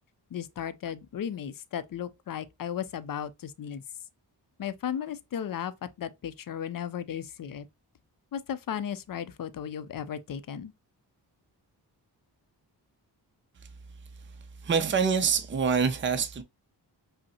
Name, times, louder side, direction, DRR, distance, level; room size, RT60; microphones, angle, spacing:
voice 1, 0.3-3.8 4.6-7.7 8.3-10.7, left 9 dB, 50° left, 0.5 m, -35 dB
voice 2, 14.6-16.4, right 6 dB, 30° right, 0.5 m, -25 dB
5.3 x 2.1 x 2.7 m
cardioid pair, 60°, 42 cm